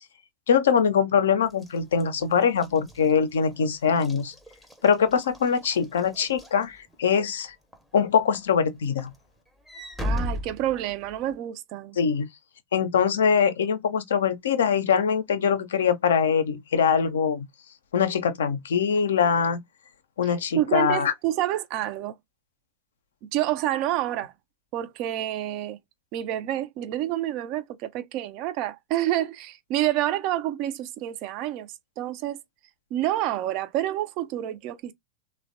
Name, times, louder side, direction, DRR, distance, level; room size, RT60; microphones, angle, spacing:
voice 1, 0.5-4.3 4.8-7.5 7.9-9.1 12.0-12.3 12.7-17.5 17.9-19.6 20.2-21.1, left 7 dB, 65° left, 0.4 m, -23 dB
Walk footsteps / Slam, 1.5-7.2 7.7-8.0 8.3-11.3, left 1 dB, ahead, 0.6 m, -37 dB
voice 2, 10.0-12.0 20.2-22.1 23.2-24.3 24.7-25.8 26.1-32.4 32.9-34.9, right 13 dB, 40° right, 0.4 m, -28 dB
3.1 x 2.1 x 2.5 m
figure-of-eight pair, 90°, 0 cm